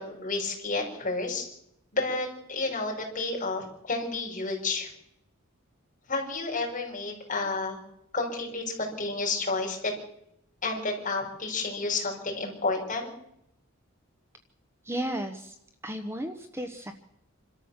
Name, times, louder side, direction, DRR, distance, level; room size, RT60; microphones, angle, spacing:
voice 1, 0.0-1.5 1.9-4.9 6.1-7.8 8.1-9.9 10.6-13.1, left 3 dB, 40° left, 0 dB, 5.8 m, -31 dB
voice 2, 14.8-15.6 15.8-16.9, right 1 dB, 10° right, 6 dB, 1.1 m, -34 dB
27.0 x 13.0 x 7.3 m, 0.76 s
head